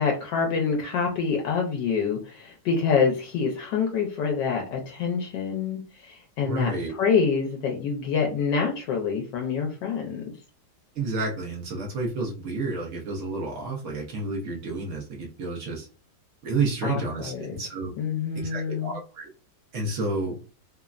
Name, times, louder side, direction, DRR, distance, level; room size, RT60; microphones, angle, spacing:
voice 1, 0.0-6.7 7.0-10.2 16.8-17.6 18.0-19.0, left 5 dB, 75° left, 0 dB, 1.2 m, -26 dB
voice 2, 6.4-7.0 10.9-15.9 16.4-17.9 18.3-19.3 19.7-20.4, right 3 dB, 85° right, -2 dB, 0.6 m, -30 dB
3.3 x 2.0 x 2.3 m, 0.36 s
omnidirectional pair, 2.0 m